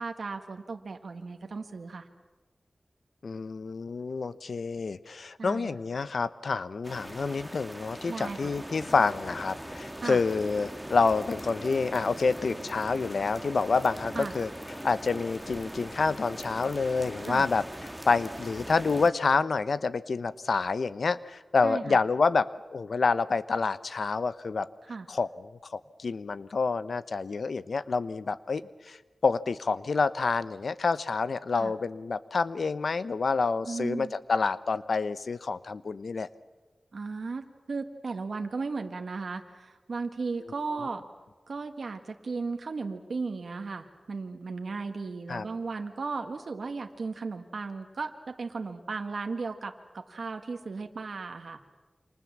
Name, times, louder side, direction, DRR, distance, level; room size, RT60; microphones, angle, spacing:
voice 1, 0.0-2.1 5.4-5.8 8.1-8.5 10.0-10.2 14.1-14.3 17.2-17.5 21.6-22.0 24.8-25.1 31.5-31.7 33.6-34.1 36.9-41.0 41.5-51.6, right 4 dB, 85° right, 5 dB, 1.6 m, -36 dB
voice 2, 3.2-14.5 14.8-24.7 25.1-29.0 29.2-36.3 45.3-45.4, left 4 dB, 85° left, 15 dB, 0.9 m, -28 dB
sound 1, 6.8-19.1, right 1 dB, 5° right, 1.9 m, -41 dB
29.5 x 27.0 x 7.4 m, 1.3 s
wide cardioid pair, 65°, 0 cm